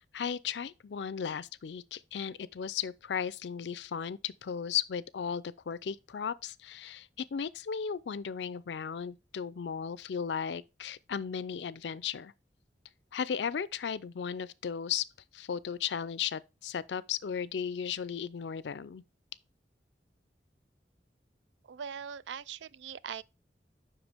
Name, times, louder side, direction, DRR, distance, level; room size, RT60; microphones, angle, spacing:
voice 1, 0.0-12.3 13.1-15.1 15.3-19.0, left 7 dB, 75° left, 0.4 m, -35 dB
voice 2, 21.6-23.2, right 7 dB, 90° right, 0.4 m, -41 dB
8.0 x 5.8 x 3.4 m
head